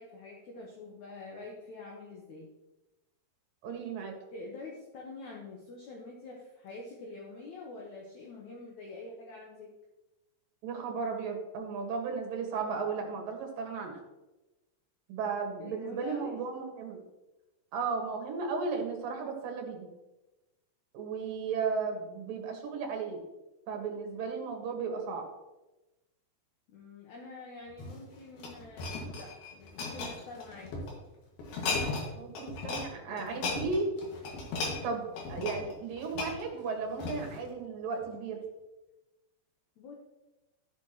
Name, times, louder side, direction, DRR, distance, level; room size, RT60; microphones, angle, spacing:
voice 1, 0.0-2.5 4.3-9.7 15.6-16.4 26.7-30.8 32.6-33.3 39.8-39.9, left 3 dB, 65° left, -1 dB, 2.2 m, -46 dB
voice 2, 3.6-4.2 10.6-14.0 15.1-17.0 17.7-19.9 20.9-23.2 23.7-25.3 32.1-33.9 34.8-35.0 35.3-38.4, right 5 dB, 65° right, 2 dB, 3.1 m, -35 dB
sound 1, 27.7-30.9 31.4-32.1 32.3-32.9 33.2-37.4 38.0-38.2, left 3 dB, 80° left, 3.9 m, -36 dB
13.5 x 6.9 x 3.0 m, 1.0 s
omnidirectional pair, 4.4 m